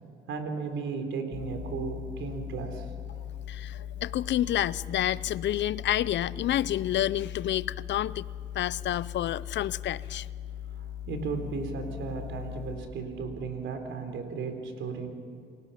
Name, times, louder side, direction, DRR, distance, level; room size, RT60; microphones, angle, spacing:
voice 1, 0.3-2.9 10.7-15.1, right 5 dB, 75° right, 6 dB, 3.9 m, -35 dB
sound 1, 1.3-12.7, left 10 dB, 80° left, 4.0 m, -39 dB
voice 2, 3.5-8.3 8.5-10.3, left 12 dB, 65° left, 19 dB, 0.6 m, -29 dB
28.5 x 18.5 x 5.8 m, 2.5 s
cardioid pair, 90°, 20 cm